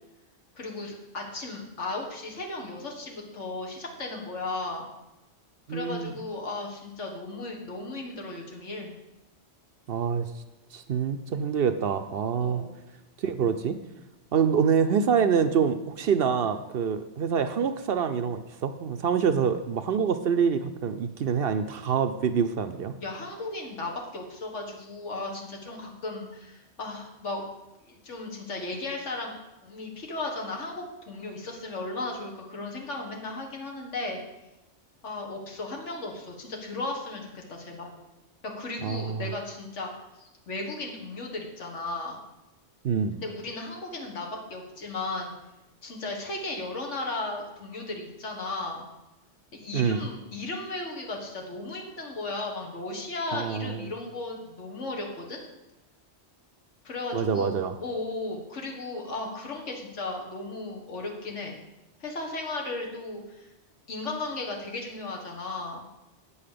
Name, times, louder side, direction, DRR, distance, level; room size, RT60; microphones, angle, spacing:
voice 1, 0.6-4.9 5.7-8.9 12.4-12.7 23.0-27.5 27.8-29.4 29.6-34.2 35.0-37.9 38.4-39.9 40.2-42.2 43.2-45.3 45.8-48.9 49.5-55.4 56.8-61.6 62.0-63.5 63.9-65.8, left 2 dB, 80° left, 0 dB, 1.9 m, -35 dB
voice 2, 5.7-6.1 9.9-10.3 10.7-12.6 13.2-13.8 14.3-22.9 38.8-39.3 42.8-43.2 49.7-50.0 53.3-53.8 57.1-57.8, right 6 dB, 60° right, 9 dB, 0.7 m, -26 dB
8.5 x 5.6 x 6.7 m, 0.97 s
omnidirectional pair, 1.2 m